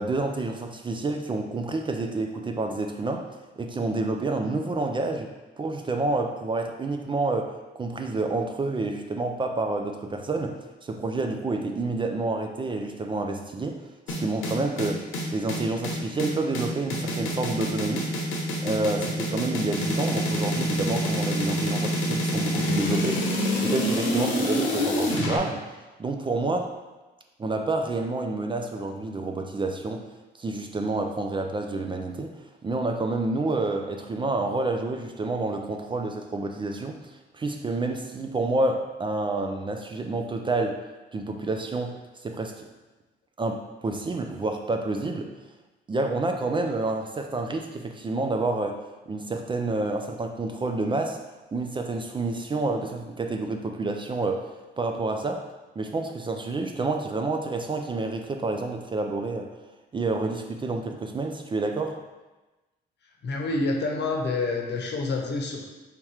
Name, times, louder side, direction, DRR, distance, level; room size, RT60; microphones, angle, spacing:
voice 1, 0.0-3.3 3.6-13.8 14.2-18.1 18.6-23.2 23.6-25.7 26.0-26.8 27.4-30.1 30.4-32.3 32.6-40.8 41.1-42.6 43.4-45.3 45.9-48.8 49.1-51.2 51.5-55.4 55.8-59.5 59.9-62.0, right 2 dB, 25° right, 4 dB, 0.4 m, -29 dB
sound 1, 14.1-25.4, equal, 90° left, 0.9 m, -26 dB
voice 2, 63.2-65.6, left 3 dB, 60° left, 1 dB, 0.9 m, -27 dB
3.5 x 2.9 x 4.7 m, 1.1 s
cardioid pair, 90°, 20 cm